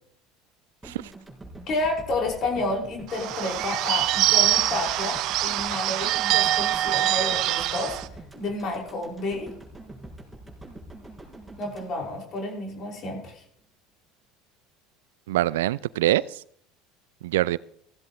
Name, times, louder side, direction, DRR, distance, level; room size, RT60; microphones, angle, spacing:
sound 1, 0.8-13.0, right 1 dB, 5° right, 5.5 m, -45 dB
voice 1, 1.7-8.0 8.4-9.5 11.6-13.3, left 2 dB, 50° left, -1 dB, 5.9 m, -30 dB
Bird / Bell, 3.1-8.1, right 14 dB, 60° right, 0.9 m, -24 dB
voice 2, 15.3-16.4 17.2-17.6, right 15 dB, 75° right, 21 dB, 0.5 m, -24 dB
15.5 x 15.5 x 3.2 m, 0.64 s
hypercardioid pair, 75°, 0 cm